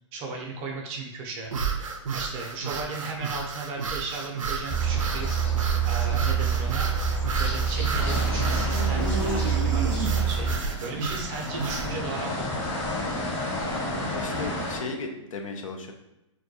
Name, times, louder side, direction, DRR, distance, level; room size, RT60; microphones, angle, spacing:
voice 1, 0.1-1.5 2.1-5.3 5.8-6.9 7.3-10.5 10.8-13.1 13.6-13.7, right 4 dB, 30° right, 1 dB, 0.5 m, -36 dB
sound 1, 1.4-11.9, right 4 dB, 85° right, 0.4 m, -32 dB
sound 2, 4.7-10.6, right 6 dB, 10° left, 0.6 m, -26 dB
sound 3, 8.0-14.8, left 1 dB, 40° left, 1.0 m, -32 dB
voice 2, 14.1-15.9, left 3 dB, 85° left, 3 dB, 0.5 m, -35 dB
2.2 x 2.2 x 2.7 m, 0.90 s
hypercardioid pair, 130°, 17 cm